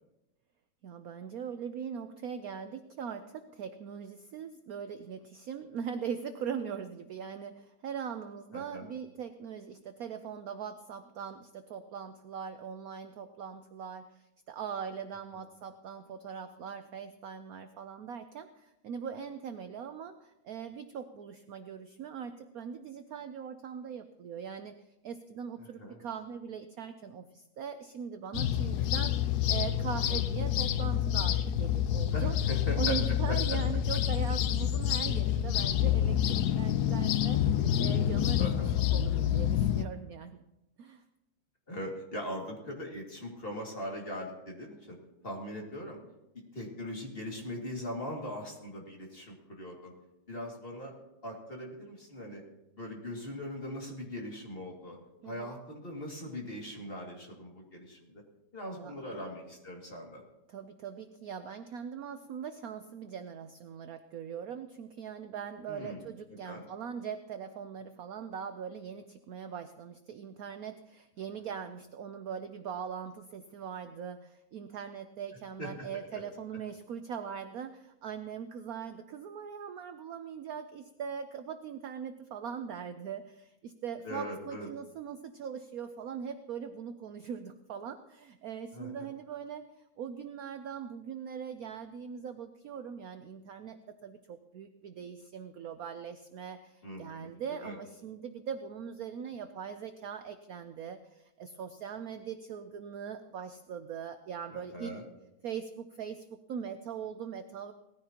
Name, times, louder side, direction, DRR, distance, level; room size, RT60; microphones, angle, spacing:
voice 1, 0.8-24.7 25.0-32.4 32.8-38.6 38.9-40.4 40.8-41.0 55.2-55.6 58.7-59.2 60.5-104.9 105.4-107.7, right 7 dB, 65° right, 9 dB, 0.9 m, -41 dB
voice 2, 8.5-8.8 25.6-26.0 32.1-33.6 38.4-38.7 41.7-45.0 45.2-46.0 46.5-49.9 50.3-50.9 51.2-52.4 52.7-55.0 55.2-58.2 58.5-60.2 65.7-66.1 66.4-66.6 75.6-76.2 84.0-84.7 88.7-89.1 96.8-97.3 97.6-97.8 104.5-105.0, equal, 30° left, -1 dB, 2.4 m, -40 dB
sound 1, 28.3-39.8, left 10 dB, 70° left, 1.0 m, -28 dB
18.5 x 14.5 x 2.9 m, 0.92 s
omnidirectional pair, 2.1 m